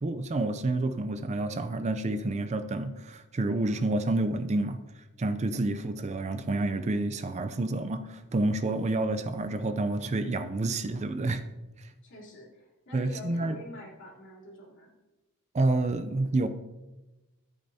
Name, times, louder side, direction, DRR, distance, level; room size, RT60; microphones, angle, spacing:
voice 1, 0.0-4.8 5.2-11.4 11.8-11.9 12.9-13.6 15.5-16.5, right 2 dB, 30° right, 9 dB, 0.4 m, -29 dB
voice 2, 12.0-14.9, left 1 dB, 60° left, -3 dB, 3.0 m, -47 dB
13.5 x 8.6 x 2.7 m, 1.1 s
head